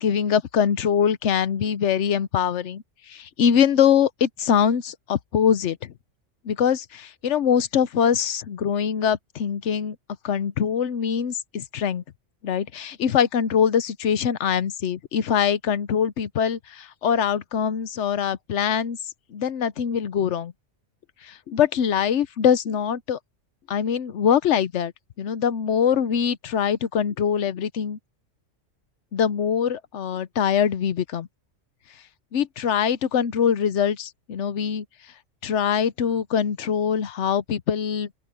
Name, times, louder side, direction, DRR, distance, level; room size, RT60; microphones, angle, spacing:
voice 1, 0.0-5.9 6.4-10.0 10.2-12.0 12.4-19.0 19.3-20.5 21.2-23.2 23.7-24.9 25.2-28.0 29.1-31.3 32.3-34.8 35.4-38.1, left 8 dB, 70° left, 1.1 m, -23 dB
open air
omnidirectional pair, 1.3 m